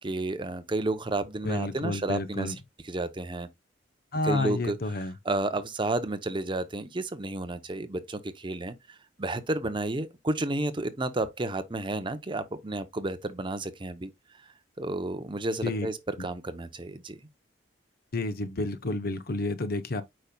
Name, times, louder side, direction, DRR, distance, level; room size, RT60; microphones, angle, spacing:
voice 1, 0.0-2.5 2.8-3.5 4.2-14.1 14.4-17.2, right 2 dB, 25° right, 0.7 m, -32 dB
voice 2, 1.4-2.6 4.1-5.1 15.6-15.9 16.2-16.3 18.1-20.0, left 2 dB, 55° left, 0.9 m, -30 dB
8.7 x 5.3 x 2.3 m
head